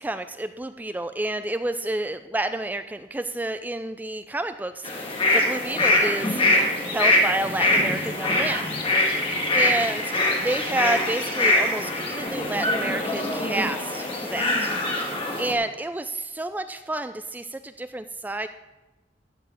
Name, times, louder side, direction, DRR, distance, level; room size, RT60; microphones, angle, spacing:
voice 1, 0.0-6.4 6.9-8.7 9.5-10.1 10.4-14.7 15.4-18.5, right 2 dB, 10° right, 10 dB, 0.3 m, -29 dB
sound 1, 4.8-15.5, left 1 dB, 30° left, 2.1 m, -23 dB
14.0 x 4.8 x 8.3 m, 1.0 s
head